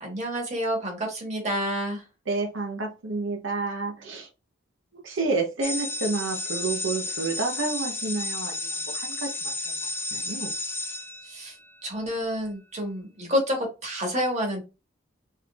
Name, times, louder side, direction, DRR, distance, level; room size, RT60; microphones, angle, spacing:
voice 1, 0.0-2.0 11.3-11.5 11.8-14.6, equal, 35° right, 1.5 m, -29 dB
voice 2, 2.3-4.3 5.0-10.5, right 3 dB, 90° right, 0.8 m, -30 dB
sound 1, 5.6-11.8, left 2 dB, 15° left, 0.4 m, -32 dB
3.7 x 3.3 x 2.3 m
head